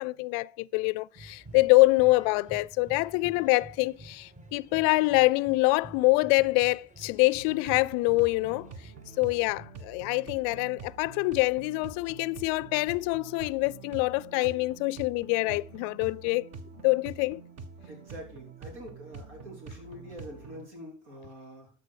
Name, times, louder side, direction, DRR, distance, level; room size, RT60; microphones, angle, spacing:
voice 1, 0.0-8.7 9.2-16.5 16.8-17.4, left 23 dB, 60° left, 0.4 m, -25 dB
sound 1, 1.1-9.7, right 2 dB, 20° right, 1.5 m, -50 dB
sound 2, 7.3-20.7, right 4 dB, 50° right, 1.4 m, -46 dB
voice 2, 17.9-21.7, equal, 80° right, 3.5 m, -45 dB
13.0 x 5.2 x 4.8 m
hypercardioid pair, 60°, 34 cm